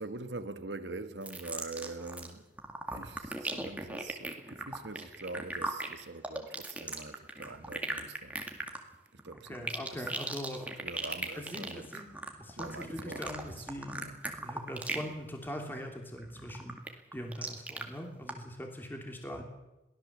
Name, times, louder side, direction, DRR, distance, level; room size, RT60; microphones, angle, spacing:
voice 1, 0.0-2.5 2.9-8.4 9.1-10.1 10.8-12.0 12.6-13.7 14.0-14.2, right 3 dB, 80° right, 1.6 m, -44 dB
sound 1, 1.2-2.3 2.6-15.1 15.4-15.8 16.2-17.8 18.3-18.4, right 2 dB, 10° right, 2.1 m, -38 dB
voice 2, 9.5-10.7 11.3-12.1 12.4-14.0 14.3-19.4, equal, 10° left, 2.9 m, -41 dB
22.5 x 16.0 x 7.4 m
head